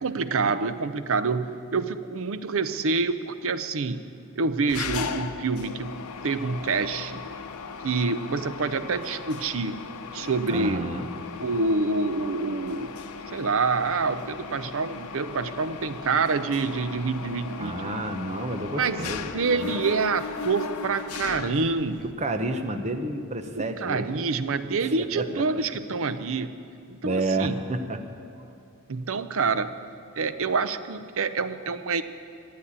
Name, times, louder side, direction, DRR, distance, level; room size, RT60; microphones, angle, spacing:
voice 1, 0.0-4.0 4.4-5.9 6.2-7.2 7.8-10.9 11.4-12.9 13.3-17.9 18.8-19.1 19.3-22.1 23.6-26.5 26.9-27.6 28.9-29.8 30.2-32.0, right 4 dB, 60° right, 12 dB, 0.6 m, -27 dB
Mechanisms, 4.7-22.1, left 5 dB, 85° left, 0.8 m, -37 dB
voice 2, 10.5-11.1 17.6-19.7 22.0-24.1 24.8-25.4 27.0-28.0 28.4-28.5, right 2 dB, 30° right, 6 dB, 1.0 m, -30 dB
14.0 x 9.5 x 8.7 m, 2.6 s
head